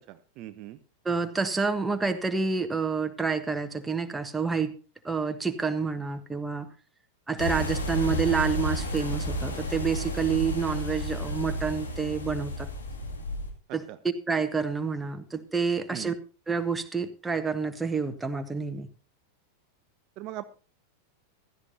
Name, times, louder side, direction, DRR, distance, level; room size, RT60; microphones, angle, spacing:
voice 1, 0.1-0.8 15.9-16.1 20.2-20.5, right 14 dB, 40° right, 10 dB, 0.7 m, -39 dB
voice 2, 1.0-4.7 5.0-6.7 7.3-12.7 13.7-16.1 16.5-18.9, right 5 dB, 10° right, 7 dB, 1.2 m, -28 dB
sound 1, 7.4-13.5, equal, 70° left, 2.4 m, -32 dB
16.0 x 13.0 x 2.7 m, 0.36 s
figure-of-eight pair, 90°, 0 cm